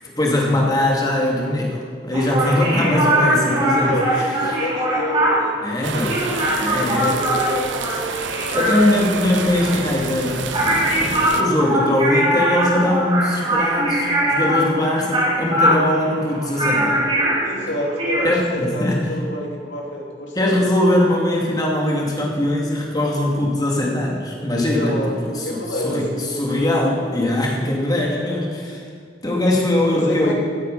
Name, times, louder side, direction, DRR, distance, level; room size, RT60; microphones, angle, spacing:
voice 1, 0.2-3.9 4.5-4.6 5.6-6.2 6.6-7.2 8.5-17.0 18.2-19.0 20.3-25.0 25.3-28.8 29.2-30.3, left 1 dB, 20° left, -2 dB, 2.6 m, -21 dB
sound 1, 2.1-18.3, right 1 dB, 30° right, 3.4 m, -21 dB
voice 2, 2.8-6.2 6.8-7.8 17.0-20.6 24.7-26.7 29.9-30.3, equal, 80° left, -1 dB, 2.8 m, -29 dB
sound 2, 5.8-11.4, right 5 dB, 90° right, 0.9 m, -29 dB
17.5 x 9.0 x 5.5 m, 2.1 s
head